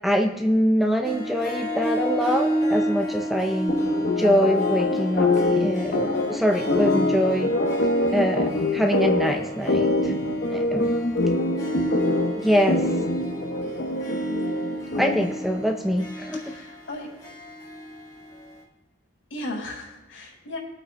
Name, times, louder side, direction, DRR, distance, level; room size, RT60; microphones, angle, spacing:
voice 1, 0.0-3.8 4.2-7.5 8.1-10.1 10.5-10.9 12.4-12.8 15.0-16.4, equal, ahead, 3 dB, 0.6 m, -24 dB
Harp, 1.0-18.6, equal, 20° left, 1.4 m, -31 dB
sound 1, 3.7-15.5, left 2 dB, 65° left, 1.0 m, -25 dB
voice 2, 16.3-17.1 19.3-20.6, left 1 dB, 80° left, -1 dB, 4.7 m, -36 dB
22.5 x 8.8 x 2.2 m, 1.0 s
head